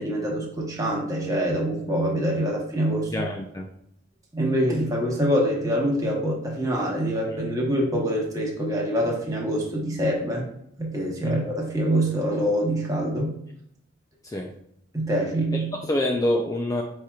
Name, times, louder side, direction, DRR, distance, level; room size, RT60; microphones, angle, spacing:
voice 1, 0.0-3.3 4.3-10.4 10.8-13.4 14.9-15.7, equal, 15° right, -2 dB, 0.9 m, -25 dB
voice 2, 3.1-3.7 11.2-11.4 14.2-14.5 15.5-16.8, left 1 dB, 15° left, 1 dB, 0.3 m, -26 dB
4.8 x 4.3 x 2.4 m, 0.72 s
head